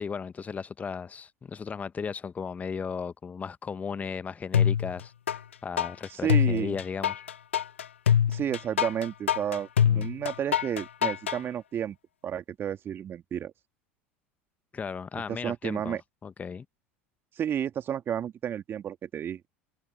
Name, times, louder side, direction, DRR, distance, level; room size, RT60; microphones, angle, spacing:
voice 1, 0.0-7.2 9.9-10.1 14.7-16.6, left 6 dB, 25° left, 1.0 m, -36 dB
sound 1, 4.5-5.4 5.8-11.4, left 9 dB, 80° left, 0.7 m, -24 dB
voice 2, 6.1-6.8 8.3-9.7 9.9-12.0 12.2-13.5 15.3-16.0 17.4-19.4, right 9 dB, 35° right, 2.3 m, -31 dB
figure-of-eight pair, 75°, 7 cm